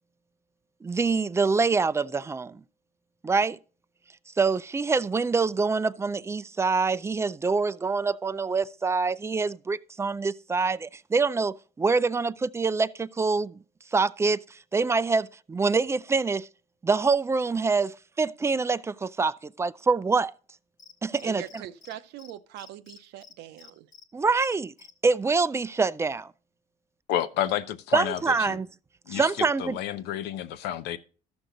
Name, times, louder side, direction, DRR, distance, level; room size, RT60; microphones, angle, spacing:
voice 1, 0.8-2.6 3.2-3.6 4.4-13.6 13.9-16.5 16.8-20.3 21.0-21.6 24.1-24.7 25.0-26.3 27.9-28.7 29.1-29.8, right 4 dB, 15° right, 0.3 m, -25 dB
Cricket, 20.8-21.9 22.2-22.3 22.6-24.0 24.4-24.9, left 5 dB, 50° left, 1.0 m, -50 dB
voice 2, 21.2-23.9, right 12 dB, 85° right, 0.7 m, -42 dB
voice 3, 27.1-27.6 27.9-28.6 29.1-31.0, left 11 dB, 85° left, 0.8 m, -30 dB
13.5 x 6.2 x 3.9 m
cardioid pair, 110°, 17 cm